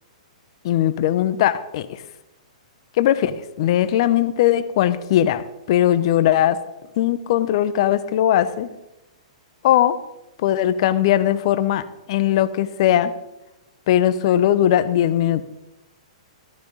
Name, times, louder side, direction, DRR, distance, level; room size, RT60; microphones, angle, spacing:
voice 1, 0.6-2.0 3.0-6.6 7.0-8.7 9.6-10.0 10.4-13.1 13.9-15.4, left 11 dB, 50° left, 14 dB, 0.9 m, -19 dB
14.5 x 13.5 x 4.1 m, 0.94 s
figure-of-eight pair, 115°, 4 cm